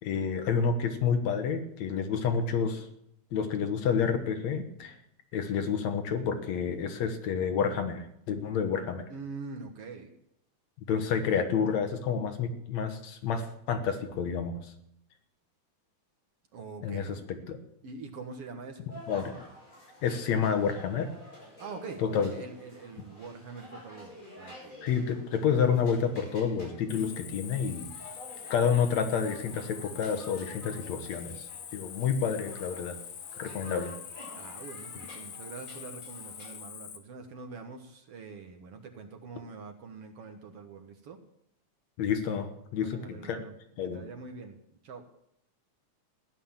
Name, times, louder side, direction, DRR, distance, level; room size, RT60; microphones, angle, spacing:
voice 1, 0.0-2.9 3.3-5.0 5.3-9.1 10.9-14.7 16.8-17.6 19.1-19.5 20.0-21.1 22.0-22.3 24.8-27.9 28.5-33.0 33.4-33.9 42.0-43.5 43.8-44.0, left 6 dB, 65° left, 7 dB, 2.4 m, -29 dB
voice 2, 9.1-10.1 16.5-17.2 17.8-18.9 21.6-24.9 34.4-41.2 42.8-43.5 43.9-44.6 44.8-45.1, right 4 dB, 55° right, 4 dB, 2.0 m, -44 dB
sound 1, 18.9-36.5, left 1 dB, 25° left, 8.6 m, -50 dB
Cricket, 26.9-37.0, left 9 dB, 90° left, 2.8 m, -44 dB
15.5 x 11.0 x 7.3 m, 0.77 s
omnidirectional pair, 3.5 m